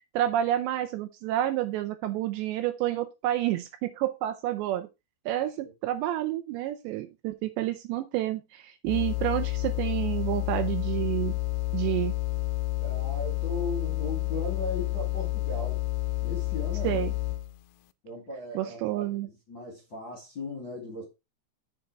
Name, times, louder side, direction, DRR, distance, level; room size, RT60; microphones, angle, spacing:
voice 1, 0.1-4.9 5.3-11.4 11.7-12.1 16.8-17.1 18.5-19.3, right 13 dB, 80° right, 2.7 m, -29 dB
sound 1, 8.9-17.6, left 18 dB, 80° left, 2.6 m, -30 dB
voice 2, 12.8-15.8 16.2-17.1 18.0-21.0, left 2 dB, 35° left, 2.2 m, -38 dB
7.5 x 6.6 x 4.6 m
omnidirectional pair, 5.4 m